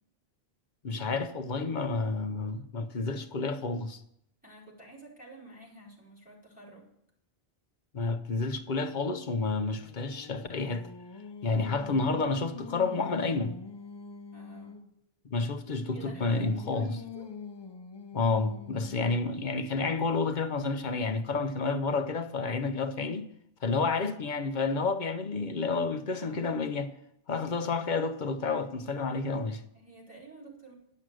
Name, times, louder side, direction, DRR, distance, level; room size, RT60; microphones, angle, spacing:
voice 1, 0.8-4.0 7.9-10.9 11.4-13.5 15.3-17.0 18.1-23.3 23.6-26.9 27.3-29.6, left 4 dB, 50° left, 0.9 m, -30 dB
voice 2, 4.4-6.9 14.3-14.9 15.9-17.3 26.1-26.6 29.7-30.7, right 2 dB, 10° right, 4.0 m, -50 dB
Singing, 9.5-14.9 15.5-19.4, left 5 dB, 35° left, 0.4 m, -46 dB
11.0 x 6.3 x 7.6 m
omnidirectional pair, 1.0 m